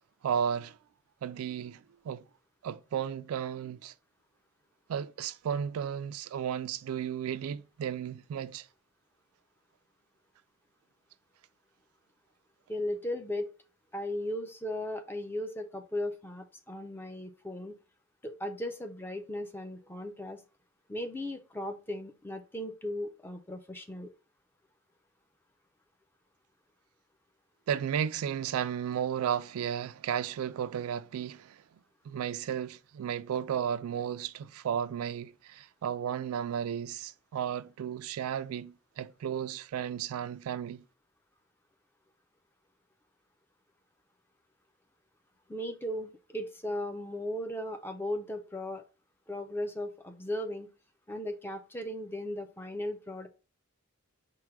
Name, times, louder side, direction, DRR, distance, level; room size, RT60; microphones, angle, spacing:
voice 1, 0.2-0.8 1.2-2.2 2.6-3.9 4.9-8.7 27.7-31.6 32.1-40.8, right 8 dB, 85° right, 0.3 m, -34 dB
voice 2, 12.7-13.5 13.9-17.7 18.2-20.4 20.9-24.1 45.5-48.9 49.3-50.7 51.1-53.3, left 1 dB, 10° left, 0.4 m, -37 dB
4.5 x 2.2 x 4.6 m
head